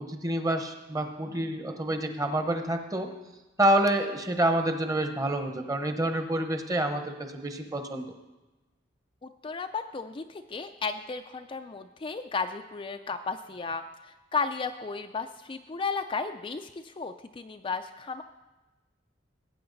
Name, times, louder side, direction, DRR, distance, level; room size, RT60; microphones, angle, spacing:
voice 1, 0.0-3.1 3.6-8.1, right 1 dB, 20° right, 6 dB, 0.9 m, -28 dB
voice 2, 9.2-18.2, left 4 dB, 30° left, 6 dB, 0.4 m, -34 dB
18.5 x 8.6 x 4.0 m, 1.1 s
head